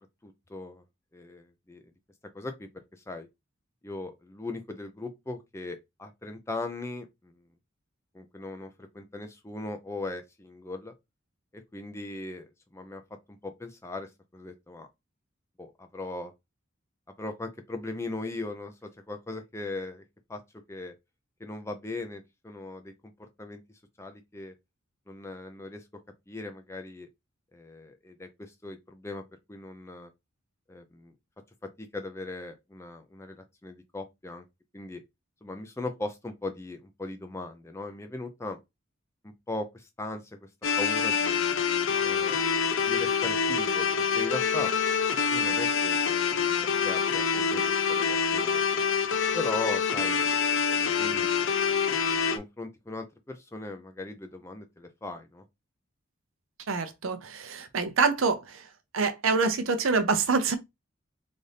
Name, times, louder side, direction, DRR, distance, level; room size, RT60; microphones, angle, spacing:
voice 1, 0.2-0.8 1.1-1.8 2.3-3.3 3.8-7.3 8.1-10.9 11.5-13.0 13.3-14.9 15.6-16.3 17.2-20.0 20.3-20.4 20.7-20.9 21.4-23.6 24.0-24.5 25.1-25.8 26.3-27.1 27.5-29.2 29.5-30.1 30.7-31.1 31.8-34.4 34.7-35.0 35.4-38.6 39.2-40.5 40.8-41.4 42.0-42.5 42.8-43.9 44.1-44.7 45.3-46.0 46.3-46.4 46.8-48.6 49.3-50.4 50.7-51.3 52.3-55.4, left 2 dB, 15° left, 0.5 m, -39 dB
sound 1, 40.6-52.4, left 6 dB, 65° left, 0.5 m, -26 dB
voice 2, 56.7-58.4 58.9-60.6, right 4 dB, 75° right, 0.6 m, -25 dB
4.0 x 2.6 x 3.3 m
head